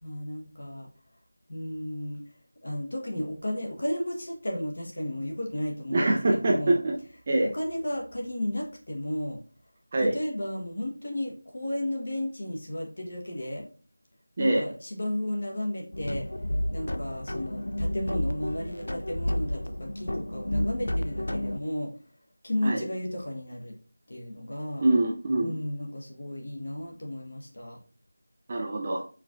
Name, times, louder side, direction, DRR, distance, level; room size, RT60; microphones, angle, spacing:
voice 1, 0.0-0.9 1.5-2.2 2.6-6.8 7.5-9.4 10.0-13.7 14.4-16.2 16.7-21.9 22.4-23.7 24.1-24.8 25.4-27.8, left 1 dB, 40° left, 1.2 m, -33 dB
voice 2, 5.9-6.9 7.3-7.5 9.9-10.2 14.4-14.6 22.6-22.8 24.8-25.5 28.5-29.0, right 2 dB, 15° right, 0.4 m, -24 dB
sound 1, 15.9-21.6, left 1 dB, 60° left, 0.4 m, -31 dB
4.7 x 4.2 x 2.4 m
figure-of-eight pair, 180°, 0 cm